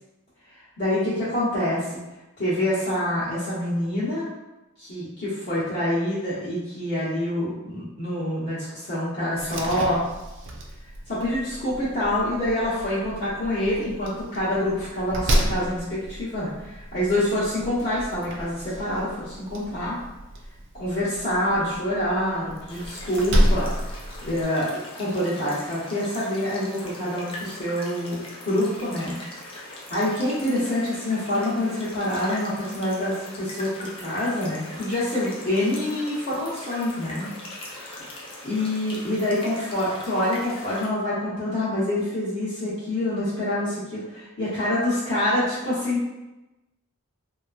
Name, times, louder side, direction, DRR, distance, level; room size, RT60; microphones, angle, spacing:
voice 1, 0.5-2.0 2.4-4.3 4.8-10.0 11.1-20.0 20.7-23.7 24.2-24.7 24.9-29.5 29.9-37.3 37.7-38.1 38.4-46.1, left 1 dB, 45° left, -12 dB, 0.8 m, -26 dB
Slam, 9.4-24.4, equal, 55° right, 0.4 m, -30 dB
sound 1, 22.7-40.9, left 1 dB, 25° left, 0.4 m, -41 dB
2.9 x 2.4 x 2.3 m, 1.0 s
head